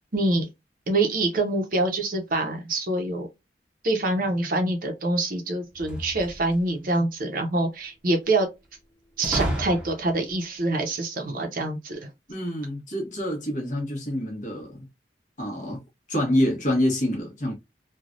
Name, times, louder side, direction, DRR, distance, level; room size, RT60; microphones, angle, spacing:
voice 1, 0.1-0.5 0.9-3.3 3.8-8.5 9.2-12.1, right 2 dB, 50° right, 0.7 m, -25 dB
sound 1, 5.7-6.8 9.2-10.3, equal, 5° right, 0.8 m, -31 dB
voice 2, 12.3-14.9 15.4-15.8 16.1-17.5, left 1 dB, 45° left, 1.1 m, -26 dB
3.2 x 2.3 x 2.5 m
head